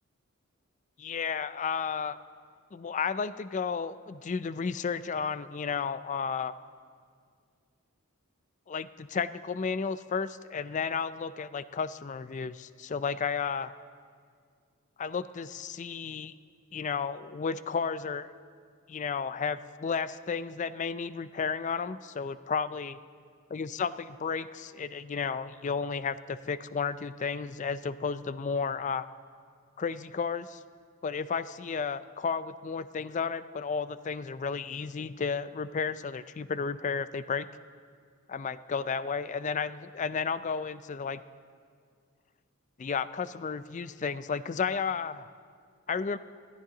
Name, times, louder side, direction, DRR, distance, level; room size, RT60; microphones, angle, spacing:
voice 1, 1.0-2.2 2.7-6.5 8.7-13.7 15.0-16.3 16.7-18.3 18.9-23.0 23.5-29.1 29.8-30.6 31.0-37.5 38.3-41.2 42.8-45.3 45.9-46.2, left 5 dB, 35° left, 15 dB, 0.4 m, -33 dB
27.0 x 10.5 x 3.9 m, 2.1 s
head